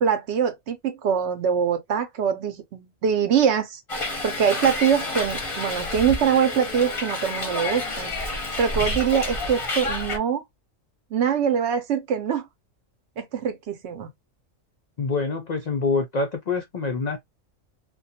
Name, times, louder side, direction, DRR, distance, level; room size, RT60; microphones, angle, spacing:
voice 1, 0.0-3.8 4.2-8.1 8.6-10.4 11.1-12.4 13.2-14.1, right 7 dB, 65° right, 0.8 m, -23 dB
Hiss, 3.9-10.2, left 2 dB, 30° left, 0.6 m, -29 dB
voice 2, 15.0-17.2, left 4 dB, 75° left, 0.3 m, -26 dB
2.3 x 2.2 x 2.7 m
omnidirectional pair, 1.4 m